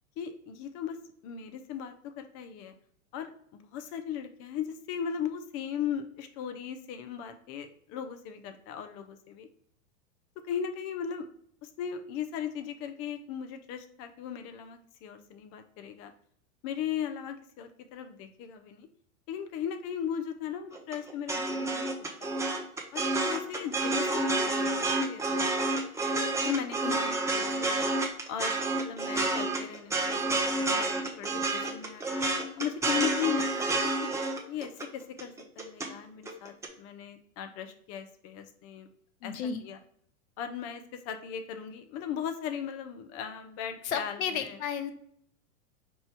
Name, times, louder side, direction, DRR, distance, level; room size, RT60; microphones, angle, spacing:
voice 1, 0.2-1.0 1.2-2.7 3.1-9.5 10.4-11.3 11.6-16.1 16.6-18.9 19.3-22.5 22.9-25.5 26.4-27.9 28.3-32.2 32.6-34.1 34.5-38.9 39.2-39.3 39.6-39.8 40.4-44.6, left 8 dB, 35° left, 7 dB, 0.6 m, -37 dB
sound 1, 20.7-35.9 36.3-36.7, right 2 dB, 5° right, 0.5 m, -29 dB
voice 2, 39.2-39.6 43.8-44.9, left 7 dB, 70° left, 9 dB, 0.8 m, -33 dB
5.4 x 3.0 x 3.3 m, 0.65 s
hypercardioid pair, 105°, 43 cm